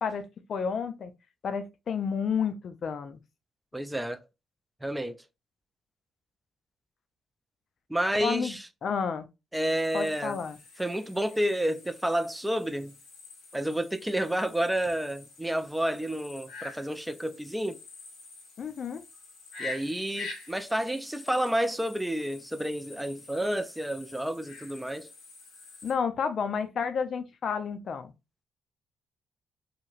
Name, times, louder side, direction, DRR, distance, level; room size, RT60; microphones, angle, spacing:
voice 1, 0.0-1.1 1.4-3.2 8.2-8.6 8.8-9.3 9.9-10.6 18.6-19.0 25.8-28.1, left 6 dB, 55° left, 0.5 m, -31 dB
voice 2, 3.7-4.2 4.8-5.2 7.9-8.6 9.5-10.4 10.8-13.0 13.5-17.8 19.6-25.1, right 1 dB, 5° right, 0.4 m, -30 dB
sound 1, 9.5-25.9, left 3 dB, 80° left, 1.2 m, -47 dB
2.9 x 2.7 x 2.4 m
cardioid pair, 95°, 0 cm